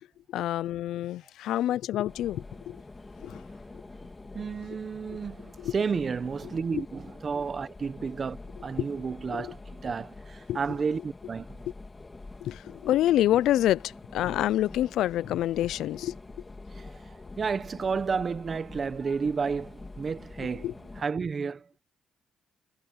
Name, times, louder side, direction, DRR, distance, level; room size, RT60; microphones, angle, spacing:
voice 1, 0.3-2.8 3.2-3.4 5.6-5.7 6.7-6.8 8.8-8.9 9.3-9.5 10.5-10.6 12.4-16.2 20.6-20.7, left 13 dB, 80° left, 0.4 m, -27 dB
sound 1, 2.1-21.0, left 3 dB, 20° left, 2.5 m, -46 dB
voice 2, 4.3-11.6 16.7-21.8, right 5 dB, 40° right, 1.3 m, -32 dB
cardioid pair, 90°, 0 cm